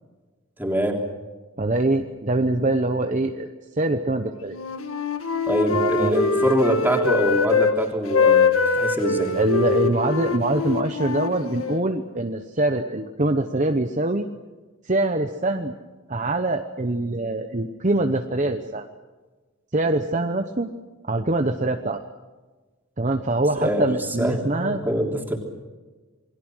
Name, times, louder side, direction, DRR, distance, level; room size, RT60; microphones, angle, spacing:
voice 1, 0.6-1.0 5.5-9.3 23.6-25.4, right 1 dB, 10° right, 1 dB, 3.4 m, -24 dB
voice 2, 1.6-3.5 3.8-4.6 5.7-6.2 9.3-14.3 14.8-15.7 16.1-18.9 19.7-20.7 21.1-22.0 23.0-24.8, right 2 dB, 35° right, 6 dB, 0.9 m, -24 dB
Wind instrument woodwind instrument, 4.5-7.8 8.1-11.8, left 5 dB, 80° left, 1.8 m, -23 dB
28.0 x 21.5 x 6.3 m, 1.3 s
head